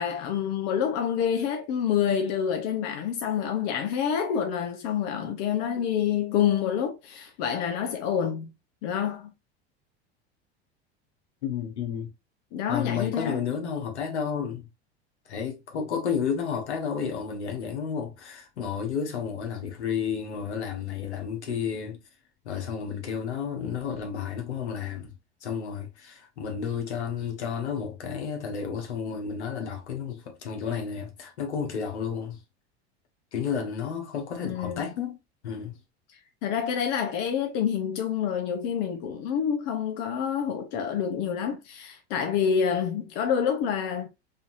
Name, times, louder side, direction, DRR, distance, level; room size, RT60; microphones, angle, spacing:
voice 1, 0.0-8.5 8.8-9.3 12.5-13.4 34.4-34.8 36.4-44.1, left 8 dB, 60° left, 1.0 m, -27 dB
voice 2, 11.4-12.1 12.7-14.7 15.3-22.0 22.4-25.1 25.4-32.4 33.3-35.2 35.4-35.8, left 7 dB, 85° left, 1.5 m, -31 dB
5.4 x 2.9 x 2.7 m
hypercardioid pair, 90°, 33 cm